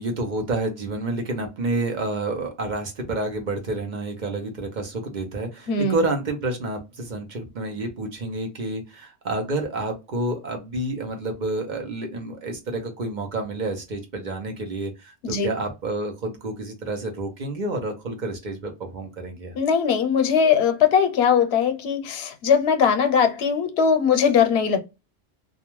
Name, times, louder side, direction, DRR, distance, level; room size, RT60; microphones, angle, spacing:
voice 1, 0.0-19.6, right 2 dB, 50° right, 0.7 m, -29 dB
voice 2, 5.7-6.0 15.2-15.5 19.6-24.8, left 6 dB, 85° left, 0.9 m, -20 dB
2.4 x 2.1 x 3.0 m
omnidirectional pair, 1.0 m